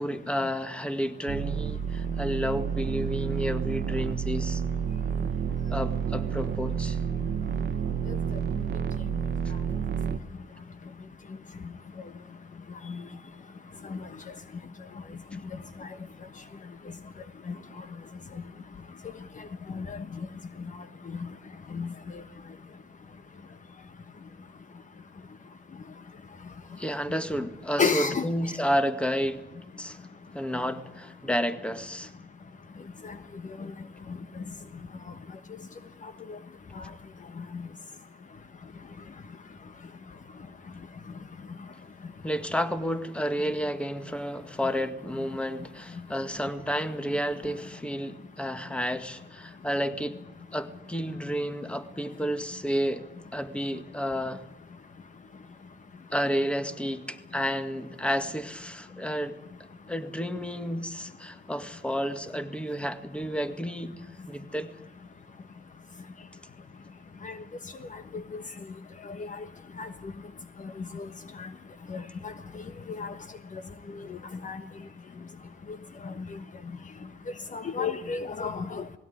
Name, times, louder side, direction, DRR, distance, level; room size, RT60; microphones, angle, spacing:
voice 1, 0.0-4.6 5.7-7.0 26.8-29.5 29.8-30.0 30.3-32.1 42.2-50.2 50.5-53.0 53.3-54.5 56.1-59.4 59.9-64.0 64.3-64.7, equal, 5° left, 1.9 m, -31 dB
sound 1, 1.3-10.2, right 7 dB, 55° right, 1.1 m, -30 dB
voice 2, 27.8-28.2 36.8-36.9 67.2-67.3 69.8-69.9 71.0-71.1 71.9-72.3 73.0-73.1 74.4-74.6 77.5-78.8, left 5 dB, 40° left, 1.3 m, -30 dB
19.5 x 16.5 x 9.6 m
cardioid pair, 90°, 20 cm